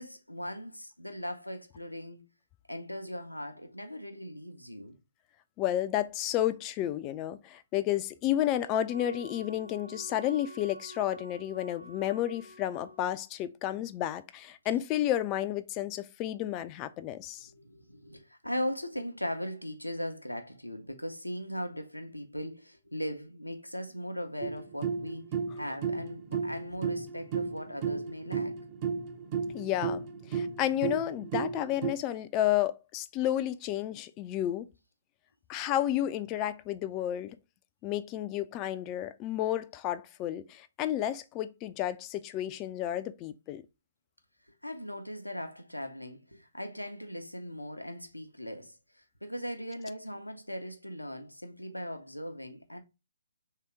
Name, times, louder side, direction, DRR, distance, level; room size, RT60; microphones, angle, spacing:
voice 1, 0.0-2.3 2.7-5.0 17.4-25.3 25.6-28.5 44.6-52.8, equal, 90° left, 0.7 m, -39 dB
voice 2, 5.6-17.5 29.5-30.0 30.3-34.7 35.5-37.4 37.8-43.6, left 12 dB, 25° left, 0.3 m, -31 dB
Wind instrument woodwind instrument, 8.9-13.2, equal, 85° right, 0.8 m, -48 dB
sound 1, 24.4-31.9, right 6 dB, 30° right, 0.5 m, -34 dB
3.4 x 2.8 x 4.6 m
figure-of-eight pair, 130°, 0 cm